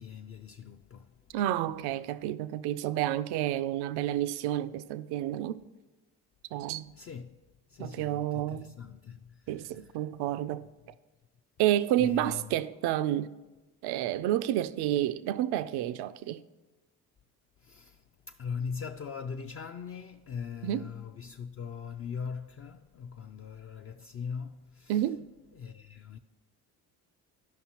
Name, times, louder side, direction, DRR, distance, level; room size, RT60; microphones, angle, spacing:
voice 1, 0.0-1.1 6.9-7.4 7.7-10.0 12.0-12.5 17.6-25.0 25.5-26.2, left 6 dB, 35° left, 0.4 m, -41 dB
voice 2, 1.3-5.6 6.5-6.9 7.8-8.7 9.5-10.6 11.6-13.3 13.8-16.4 20.6-20.9 24.9-25.3, right 13 dB, 65° right, 0.5 m, -30 dB
12.5 x 5.4 x 2.9 m
hypercardioid pair, 60°, 43 cm